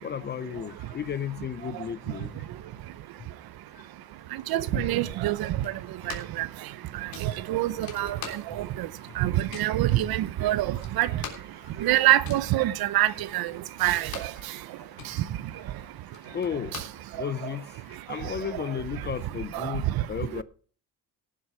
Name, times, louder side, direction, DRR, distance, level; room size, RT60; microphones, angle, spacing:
voice 1, 0.0-2.4 4.7-4.9 7.7-8.2 9.0-9.1 10.1-10.3 11.1-11.9 14.1-14.2 15.5-15.7 16.2-16.7 17.2-20.4, left 8 dB, 30° left, 0.4 m, -35 dB
voice 2, 4.3-5.8 6.0-6.5 6.9-8.9 9.2-11.2 11.8-13.5 13.8-14.3 15.0-15.2 18.2-18.3 19.5-20.1, right 14 dB, 70° right, 0.8 m, -26 dB
sound 1, 5.6-6.5 6.7-6.8 7.1-8.8 9.1-9.8 10.3-10.4 10.6-14.4 14.8-17.5, left 7 dB, 65° left, 3.4 m, -43 dB
17.5 x 7.4 x 4.8 m
cardioid pair, 160°, 38 cm